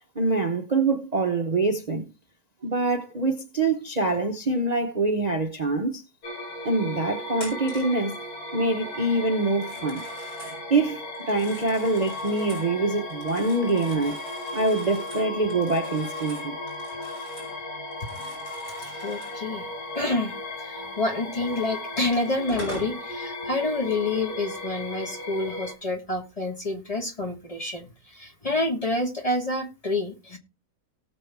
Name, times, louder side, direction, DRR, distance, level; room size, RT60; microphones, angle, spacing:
voice 1, 0.2-2.1 2.6-6.0 6.6-8.2 8.5-10.0 10.7-14.2 14.5-16.6, right 3 dB, 35° right, 0.8 m, -25 dB
sound 1, 6.2-25.7, left 1 dB, 90° left, 2.5 m, -36 dB
Telephone, 7.3-8.0 9.5-10.6 11.1-12.7 13.1-17.6 17.9-19.4 21.5-21.6 22.2-23.0, left 1 dB, 45° left, 6.4 m, -43 dB
voice 2, 18.8-19.7 19.9-30.4, left 2 dB, 25° left, 1.3 m, -28 dB
18.0 x 6.3 x 3.4 m
omnidirectional pair, 1.6 m